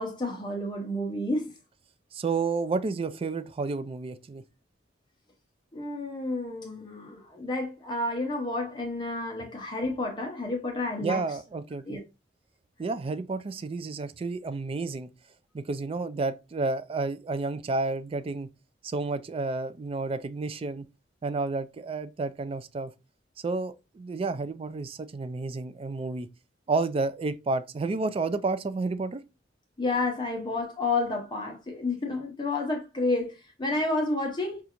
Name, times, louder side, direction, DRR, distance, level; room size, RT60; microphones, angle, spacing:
voice 1, 0.0-1.5 5.7-11.2 11.9-12.0 29.8-33.3 33.6-34.6, left 2 dB, 25° left, 0.6 m, -30 dB
voice 2, 2.1-4.4 11.0-12.0 12.8-15.1 15.5-18.5 18.8-20.8 21.2-22.9 23.4-26.3 26.7-29.2, right 3 dB, 30° right, 0.3 m, -31 dB
4.9 x 2.4 x 2.8 m
head